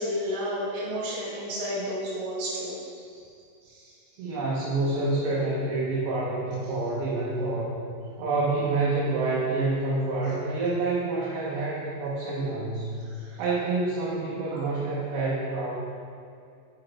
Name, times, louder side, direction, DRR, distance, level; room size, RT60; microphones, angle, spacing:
voice 1, 0.0-2.7 3.1-3.2 3.6-3.9 13.0-13.4 14.5-14.6, equal, 60° right, -8 dB, 2.4 m, -32 dB
voice 2, 4.2-7.8 8.2-13.0 13.4-15.7, right 3 dB, 75° right, -7 dB, 2.5 m, -27 dB
7.5 x 4.7 x 3.2 m, 2.4 s
omnidirectional pair, 5.2 m